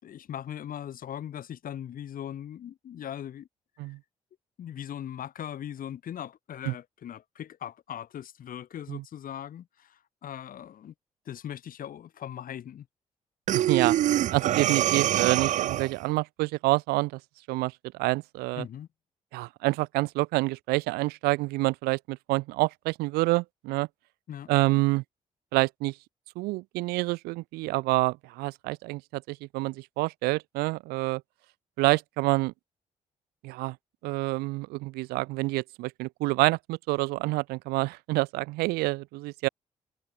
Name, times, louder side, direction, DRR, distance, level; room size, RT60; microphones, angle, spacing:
voice 1, 0.0-3.5 3.8-3.9 4.6-10.9 11.3-12.9 18.6-18.9 24.3-24.8, left 10 dB, 60° left, 3.7 m, -40 dB
Breathing, 13.5-16.0, right 12 dB, 50° right, 0.4 m, -25 dB
voice 2, 13.5-14.0 14.3-17.2 17.5-17.7 18.0-18.7 19.3-23.9 24.5-25.0 25.5-25.9 26.4-31.2 31.8-32.5 33.4-33.8 34.0-39.5, right 22 dB, 75° right, 2.3 m, -27 dB
hypercardioid pair, 40°, 16 cm